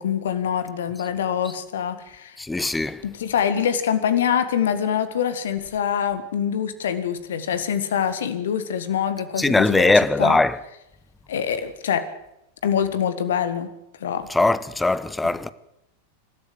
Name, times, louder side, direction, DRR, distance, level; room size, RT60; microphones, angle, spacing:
voice 1, 0.0-2.4 3.0-9.9 10.2-10.4 11.3-12.0 12.6-13.7 14.0-14.3 15.2-15.3, left 8 dB, 60° left, 1.8 m, -24 dB
voice 2, 2.4-3.0 9.4-10.6 14.3-15.5, left 2 dB, 10° left, 0.9 m, -20 dB
27.0 x 13.0 x 8.0 m
figure-of-eight pair, 90°, 0 cm